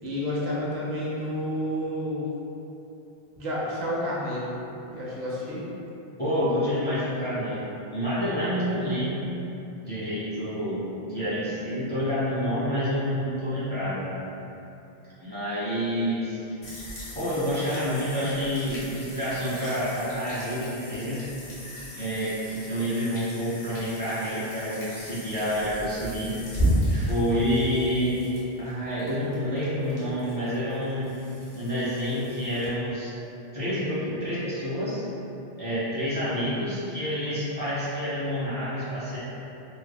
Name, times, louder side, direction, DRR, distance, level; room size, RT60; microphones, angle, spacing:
voice 1, 0.0-2.3 3.4-5.7, equal, 85° right, -6 dB, 0.9 m, -30 dB
voice 2, 6.2-9.2 9.9-14.0 15.2-16.4 17.1-21.2 21.9-26.3 26.9-28.2 28.6-31.1 31.5-33.1 33.5-35.0 35.6-39.2, equal, 10° left, -12 dB, 0.7 m, -28 dB
sound 1, 16.6-32.7, equal, 85° left, 1.0 m, -34 dB
3.4 x 2.0 x 2.2 m, 2.9 s
omnidirectional pair, 1.0 m